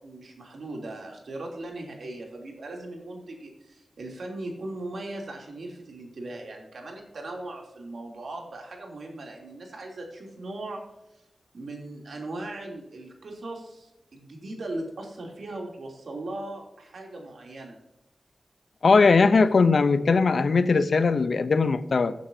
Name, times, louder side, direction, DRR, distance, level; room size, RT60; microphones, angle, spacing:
voice 1, 0.0-10.8 11.5-17.8 19.3-19.4, right 2 dB, 75° right, 0 dB, 3.1 m, -38 dB
voice 2, 18.8-22.1, left 4 dB, 70° left, 13 dB, 0.7 m, -20 dB
16.5 x 9.3 x 2.8 m, 0.93 s
wide cardioid pair, 95°, 0 cm